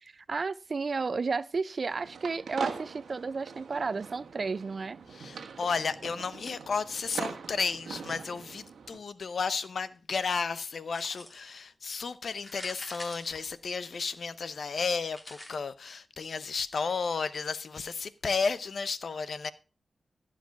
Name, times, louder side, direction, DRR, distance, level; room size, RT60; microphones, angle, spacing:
voice 1, 0.0-5.0, right 4 dB, 55° right, 0.6 m, -32 dB
sound 1, 1.9-9.0, right 6 dB, 85° right, 1.4 m, -42 dB
voice 2, 5.1-19.5, left 5 dB, 70° left, 0.8 m, -33 dB
sound 2, 10.9-11.6 12.3-14.1 15.1-15.5, left 1 dB, 25° left, 2.8 m, -46 dB
14.5 x 5.0 x 5.8 m
cardioid pair, 45°, 0 cm